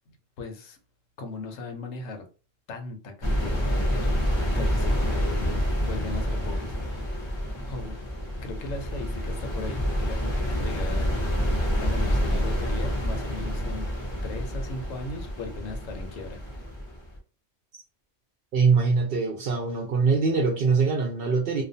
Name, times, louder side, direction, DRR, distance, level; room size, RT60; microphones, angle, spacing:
voice 1, 0.4-0.8 1.2-2.2 2.7-4.3 4.5-6.8 7.0-7.2 7.6-8.0 8.4-11.5 11.8-13.9 14.2-16.4, left 3 dB, 85° left, 4 dB, 1.0 m, -38 dB
sound 1, 3.2-17.2, equal, 30° left, 0.5 m, -28 dB
voice 2, 18.5-21.6, right 4 dB, 60° right, 2 dB, 0.6 m, -23 dB
2.4 x 2.2 x 2.6 m, 0.35 s
omnidirectional pair, 1.3 m